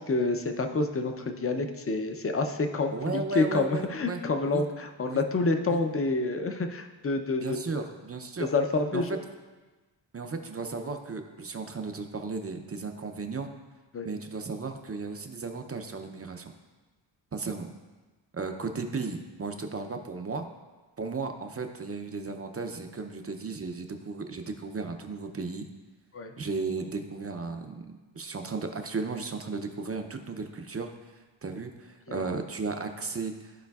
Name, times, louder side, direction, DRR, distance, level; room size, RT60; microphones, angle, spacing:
voice 1, 0.0-7.4 7.7-7.9 8.4-9.2 13.9-14.1 26.1-26.3 32.1-32.3, left 3 dB, 30° left, 5 dB, 0.5 m, -28 dB
voice 2, 2.9-4.2 4.5-4.6 5.1-5.2 7.4-8.5 8.9-9.0 10.1-13.5 14.0-16.5 17.3-17.7 18.3-20.5 21.0-25.7 26.4-30.9 31.4-33.7, right 4 dB, 35° right, 5 dB, 0.5 m, -35 dB
14.0 x 4.8 x 2.3 m, 1.2 s
wide cardioid pair, 175°, 45 cm